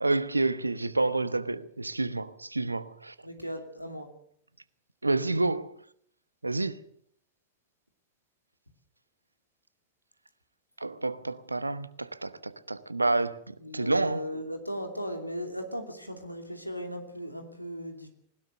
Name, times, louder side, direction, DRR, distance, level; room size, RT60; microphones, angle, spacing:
voice 1, 0.0-3.1 5.0-5.8 6.4-6.8 10.8-14.3, right 2 dB, 80° right, 0.9 m, -29 dB
voice 2, 3.2-4.1 13.6-18.1, equal, 90° left, 2.9 m, -37 dB
20.5 x 19.5 x 6.7 m
figure-of-eight pair, 90°, 0 cm